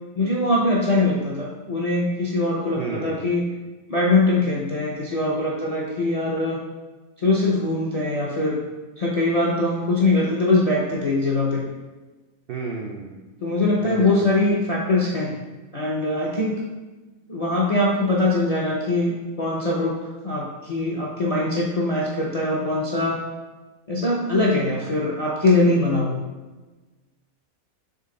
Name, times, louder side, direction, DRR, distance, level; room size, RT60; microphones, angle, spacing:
voice 1, 0.2-3.5 3.9-6.6 7.2-8.6 9.0-11.6 13.4-15.3 15.7-16.6 17.3-20.0 20.2-23.2 23.9-26.2, left 2 dB, 50° left, -5 dB, 0.4 m, -22 dB
voice 2, 2.7-3.4 12.5-13.2 13.8-14.3, right 4 dB, 75° right, 0 dB, 0.5 m, -32 dB
3.9 x 3.6 x 3.7 m, 1.2 s
omnidirectional pair, 1.5 m